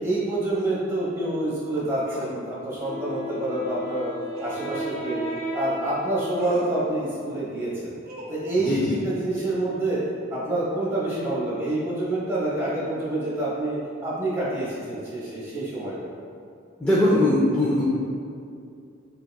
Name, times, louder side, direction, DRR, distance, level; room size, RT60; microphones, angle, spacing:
voice 1, 0.0-4.1 4.4-5.2 5.5-7.9 8.3-10.0 10.3-16.1, right 2 dB, 15° right, -9 dB, 1.0 m, -27 dB
sound 1, 2.0-2.4 4.3-4.7 6.4-6.7 8.1-8.8, right 2 dB, 50° right, 0.5 m, -38 dB
Wind instrument woodwind instrument, 2.8-7.6, left 1 dB, 90° left, 0.6 m, -35 dB
voice 2, 8.6-8.9 16.8-17.8, left 1 dB, 5° left, -7 dB, 0.4 m, -20 dB
6.3 x 2.3 x 2.3 m, 2.5 s
head